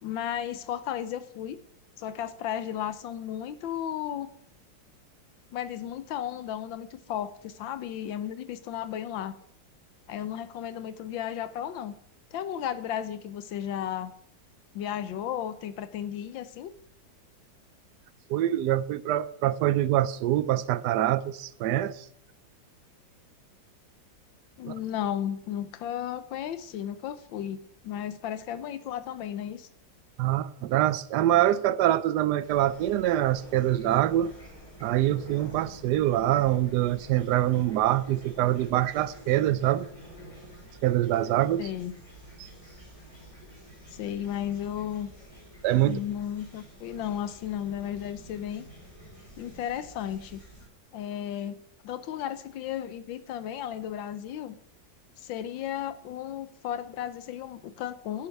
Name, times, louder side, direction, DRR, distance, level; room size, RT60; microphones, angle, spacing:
voice 1, 0.0-1.6 2.0-4.3 5.5-9.3 10.1-11.9 12.3-14.1 14.7-16.7 24.6-29.7 41.6-41.9 43.9-45.1 45.8-48.7 49.4-50.4 50.9-51.6 51.8-54.6 55.2-58.3, left 10 dB, 90° left, 1.5 m, -34 dB
voice 2, 18.3-22.0 24.7-24.8 30.2-34.4 34.8-39.9 40.8-41.7 42.4-42.5 45.6-46.0, right 13 dB, 70° right, 1.1 m, -25 dB
Fowl / Chirp tweet, 32.4-50.7, equal, 15° left, 4.9 m, -49 dB
9.8 x 8.6 x 4.7 m
omnidirectional pair, 2.0 m